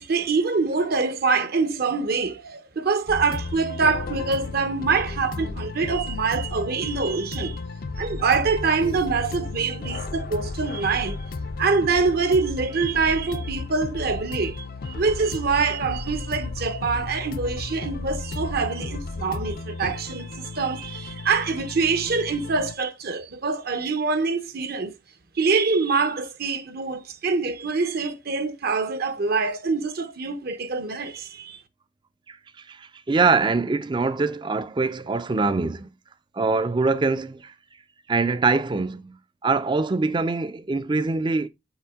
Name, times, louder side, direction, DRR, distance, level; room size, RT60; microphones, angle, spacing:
voice 1, 0.0-7.6 8.0-11.2 11.6-24.9 25.4-31.6, right 4 dB, 55° right, 0.8 m, -25 dB
sound 1, 3.1-22.7, left 3 dB, 50° left, 0.5 m, -34 dB
voice 2, 32.3-35.9 36.3-37.5 38.1-41.5, right 4 dB, 25° right, 0.4 m, -24 dB
7.2 x 4.3 x 3.5 m
head